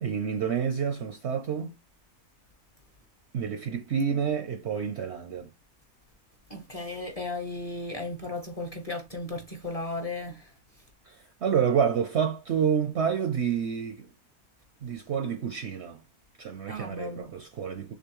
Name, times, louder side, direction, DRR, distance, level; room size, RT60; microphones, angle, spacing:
voice 1, 0.0-1.7 3.3-5.5 11.1-14.1 14.8-16.0 16.4-17.9, right 7 dB, 60° right, 0.7 m, -28 dB
voice 2, 6.5-10.5 16.7-17.3, left 2 dB, 30° left, 0.8 m, -35 dB
6.8 x 2.5 x 3.0 m
omnidirectional pair, 1.6 m